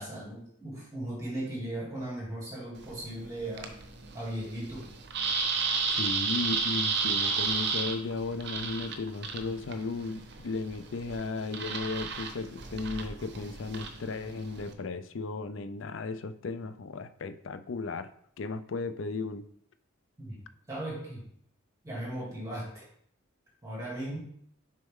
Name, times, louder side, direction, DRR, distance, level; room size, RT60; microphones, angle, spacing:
voice 1, 0.0-3.7 4.1-4.9 20.2-20.4 20.7-21.3 21.8-22.8 23.6-24.2, right 1 dB, 15° right, -5 dB, 2.2 m, -37 dB
sound 1, 2.8-14.7, right 4 dB, 55° right, 0.7 m, -33 dB
voice 2, 5.9-18.1 18.4-19.4, left 3 dB, 65° left, 12 dB, 0.5 m, -35 dB
6.3 x 4.2 x 3.6 m, 0.66 s
head